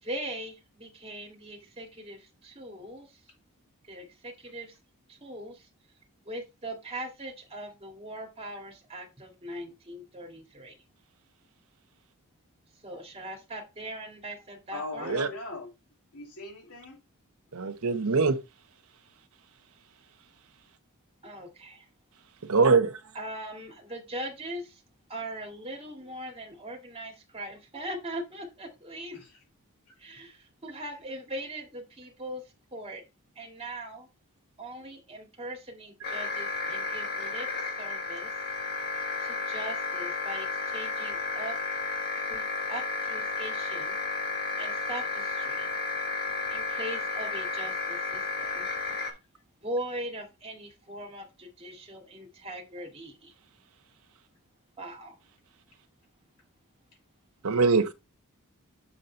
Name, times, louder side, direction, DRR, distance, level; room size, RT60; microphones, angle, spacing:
voice 1, 0.0-3.1 3.9-4.8 5.1-5.7 6.3-10.8 12.8-15.2 21.2-21.9 23.1-24.8 25.1-29.2 30.0-32.4 32.7-33.0 33.4-34.1 34.6-37.5 37.8-38.3 39.2-41.6 42.3-44.0 44.6-45.7 46.5-48.7 49.6-53.3 54.8-55.2, right 1 dB, 25° right, 2.0 m, -40 dB
voice 2, 14.7-15.7 16.1-17.0 29.1-29.3, left 2 dB, 85° left, 2.7 m, -39 dB
voice 3, 17.5-18.4 22.5-22.9 57.4-57.9, right 4 dB, 70° right, 0.9 m, -22 dB
sound 1, 36.0-49.1, left 3 dB, 45° left, 1.4 m, -32 dB
7.3 x 3.9 x 4.4 m
head